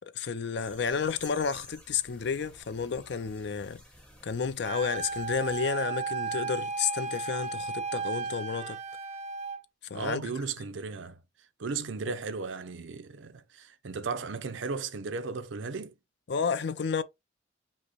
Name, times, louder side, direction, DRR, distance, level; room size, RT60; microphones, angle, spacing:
voice 1, 0.1-3.8 4.2-8.8 9.9-10.3 16.3-17.0, left 6 dB, 60° left, 0.4 m, -31 dB
sound 1, 0.6-5.6, equal, 5° left, 1.1 m, -52 dB
Wind instrument woodwind instrument, 4.6-9.6, right 5 dB, 35° right, 0.4 m, -34 dB
voice 2, 9.9-11.2 11.6-15.9, right 4 dB, 85° right, 0.6 m, -35 dB
5.5 x 2.1 x 4.0 m
head